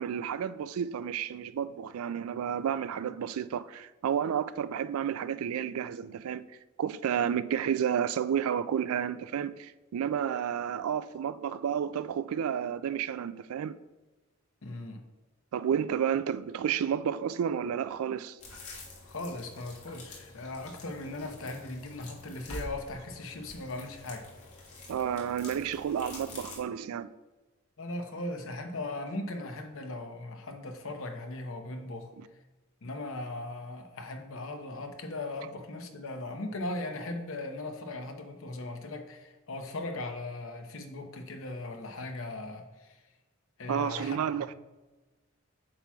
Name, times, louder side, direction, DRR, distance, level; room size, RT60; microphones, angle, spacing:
voice 1, 0.0-6.4 6.8-13.7 15.5-18.4 24.9-27.1 43.7-44.5, right 8 dB, 75° right, 0.3 m, -31 dB
voice 2, 14.6-15.0 19.1-24.3 27.8-32.1 32.8-43.0 43.6-44.5, left 2 dB, 65° left, 0.8 m, -38 dB
sound 1, 18.4-26.6, left 1 dB, 85° left, 1.6 m, -47 dB
8.6 x 5.8 x 2.3 m
head